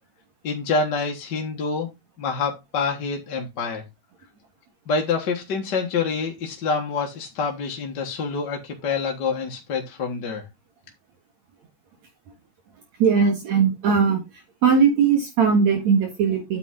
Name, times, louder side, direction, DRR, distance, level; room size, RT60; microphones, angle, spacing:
voice 1, 0.4-1.9 2.2-3.9 4.9-10.4, left 4 dB, 45° left, 1.6 m, -26 dB
voice 2, 13.0-14.2 14.6-16.6, right 6 dB, 65° right, 2.8 m, -19 dB
9.1 x 6.9 x 3.7 m
omnidirectional pair, 3.5 m